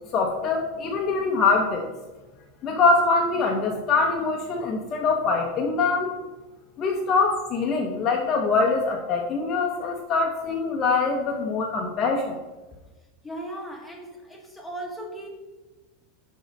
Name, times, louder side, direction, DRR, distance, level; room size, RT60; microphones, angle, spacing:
voice 1, 0.1-1.9 2.6-6.1 6.8-12.3, left 4 dB, 25° left, 1 dB, 0.6 m, -23 dB
voice 2, 13.2-15.3, right 1 dB, ahead, -1 dB, 1.0 m, -37 dB
10.5 x 3.7 x 5.1 m, 1.2 s
supercardioid pair, 180°, 0 cm